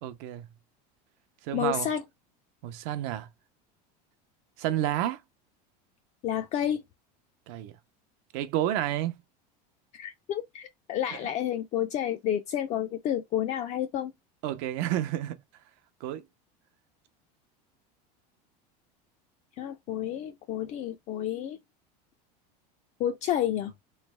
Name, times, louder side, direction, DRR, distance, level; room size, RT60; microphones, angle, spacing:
voice 1, 0.0-0.5 1.4-1.9 2.6-3.3 4.6-5.2 7.5-7.7 8.3-9.2 14.4-15.4 16.0-16.2, right 12 dB, 60° right, 0.6 m, -30 dB
voice 2, 1.5-2.0 6.2-6.8 9.9-14.1 19.6-21.6 23.0-23.7, left 10 dB, 35° left, 0.4 m, -30 dB
3.2 x 3.0 x 3.2 m
supercardioid pair, 145°, 20 cm